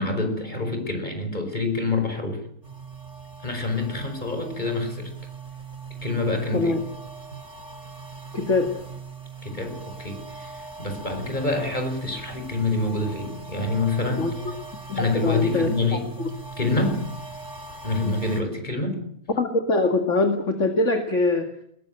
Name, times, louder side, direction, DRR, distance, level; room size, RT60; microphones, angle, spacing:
voice 1, 0.0-2.4 3.4-5.1 6.0-6.8 9.4-14.4 14.9-16.2 16.6-17.0 17.8-19.0, left 2 dB, 30° left, 6 dB, 5.5 m, -27 dB
sound 1, 2.6-18.4, right 4 dB, 50° right, 5.3 m, -40 dB
voice 2, 8.3-8.7 14.2-14.3 14.9-15.7 19.4-21.5, left 3 dB, 55° left, 6 dB, 2.4 m, -23 dB
21.5 x 20.5 x 9.0 m, 0.72 s
omnidirectional pair, 1.5 m